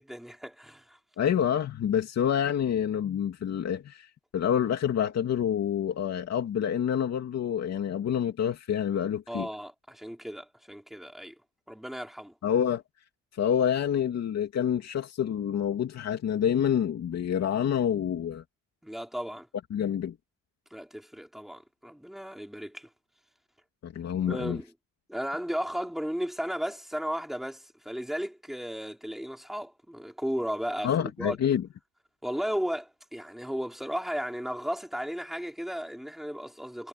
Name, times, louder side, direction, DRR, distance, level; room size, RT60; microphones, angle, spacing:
voice 1, 0.0-1.0 9.3-11.3 11.7-12.3 18.8-19.5 20.7-22.9 24.3-24.7 25.1-31.4 32.2-36.9, equal, ahead, 4.0 m, -35 dB
voice 2, 1.2-9.5 12.4-12.8 13.3-18.4 19.7-20.2 23.8-24.6 30.8-31.7, left 9 dB, 50° left, 3.0 m, -27 dB
cardioid pair, 155°, 32 cm